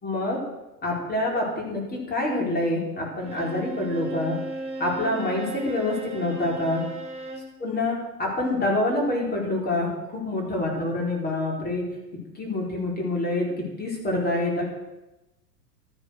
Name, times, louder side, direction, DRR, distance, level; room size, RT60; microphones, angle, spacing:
voice 1, 0.0-0.4 0.8-4.4 4.8-6.8 7.6-11.8 12.3-14.7, left 2 dB, 20° left, -1 dB, 4.8 m, -26 dB
Bowed string instrument, 3.2-7.5, right 2 dB, 15° right, 3.2 m, -36 dB
13.5 x 10.0 x 6.6 m, 1.0 s
hypercardioid pair, 115°, 48 cm